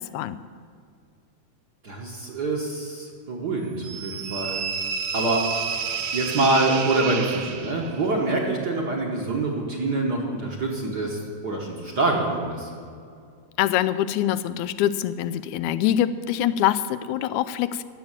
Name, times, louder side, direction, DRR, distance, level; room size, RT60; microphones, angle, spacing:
voice 1, 1.8-4.6 5.1-5.4 6.1-12.7, right 2 dB, 45° right, -1 dB, 1.5 m, -25 dB
sound 1, 3.8-8.0, right 6 dB, 75° right, 1.9 m, -30 dB
voice 2, 13.6-17.8, left 11 dB, 85° left, 13 dB, 2.0 m, -24 dB
14.0 x 7.3 x 8.9 m, 2.3 s
omnidirectional pair, 3.3 m